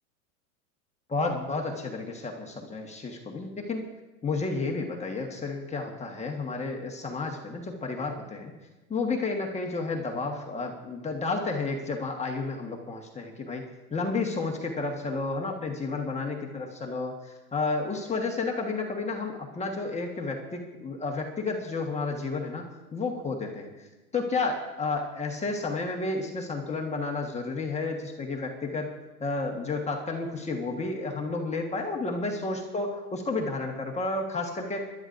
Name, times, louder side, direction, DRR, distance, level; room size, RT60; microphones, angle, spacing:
voice 1, 1.1-3.9 4.2-8.5 8.9-23.9 24.1-28.9 29.2-34.8, left 3 dB, 15° left, 1 dB, 1.4 m, -31 dB
22.5 x 12.0 x 2.6 m, 1.1 s
supercardioid pair, 125°, 44 cm